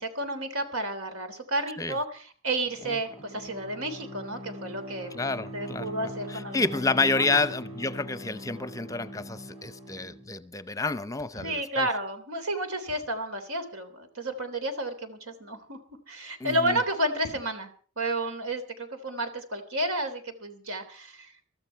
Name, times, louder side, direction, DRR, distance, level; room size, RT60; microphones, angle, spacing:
voice 1, 0.0-6.6 7.1-7.4 11.4-15.8 16.1-17.7 18.0-21.3, right 1 dB, 85° right, 3.3 m, -31 dB
Bowed string instrument, 2.6-10.3, equal, 30° right, 4.4 m, -42 dB
voice 2, 5.1-5.9 6.3-11.9 16.4-16.8, left 3 dB, 15° left, 0.7 m, -29 dB
23.0 x 13.5 x 4.6 m
head